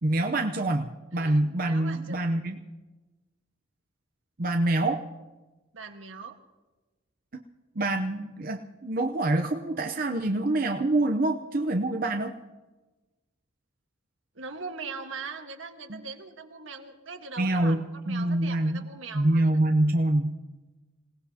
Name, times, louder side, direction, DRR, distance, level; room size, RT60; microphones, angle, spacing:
voice 1, 0.0-2.6 4.4-5.0 7.8-12.3 15.9-16.0 17.4-17.8 18.1-18.8 19.1-20.4, right 1 dB, 45° right, 4 dB, 0.7 m, -26 dB
voice 2, 1.1-2.6 5.7-6.4 14.3-19.4, right 4 dB, 80° right, 4 dB, 1.5 m, -41 dB
26.5 x 18.0 x 2.9 m, 1.2 s
head